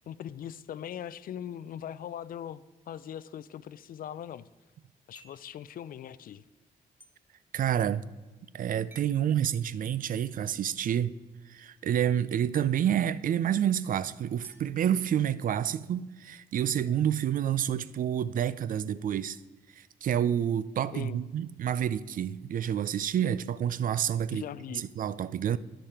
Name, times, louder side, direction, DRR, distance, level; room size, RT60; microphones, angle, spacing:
voice 1, 0.1-4.5 5.1-6.4 20.9-21.2 24.3-24.9, left 10 dB, 60° left, 0.4 m, -40 dB
sound 1, 5.1-5.5 7.0-7.1 8.9-9.2 10.8-10.9 12.5-12.7 14.4-15.5, equal, 10° right, 0.9 m, -56 dB
voice 2, 7.5-8.0 8.5-11.1 11.5-19.4 19.7-24.5 24.7-25.6, right 9 dB, 55° right, 0.4 m, -28 dB
12.0 x 5.2 x 4.3 m
cardioid pair, 70°, 16 cm